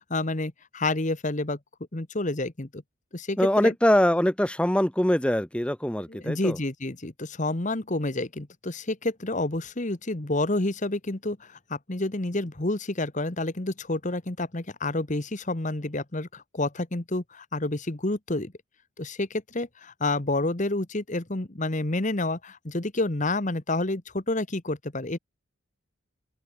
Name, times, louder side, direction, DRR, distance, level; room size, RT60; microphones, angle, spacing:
voice 1, 0.1-1.6 1.9-2.8 3.1-3.7 6.1-18.5 19.0-25.2, left 2 dB, 35° left, 1.3 m, -29 dB
voice 2, 3.4-6.6, equal, 5° left, 0.9 m, -23 dB
open air
head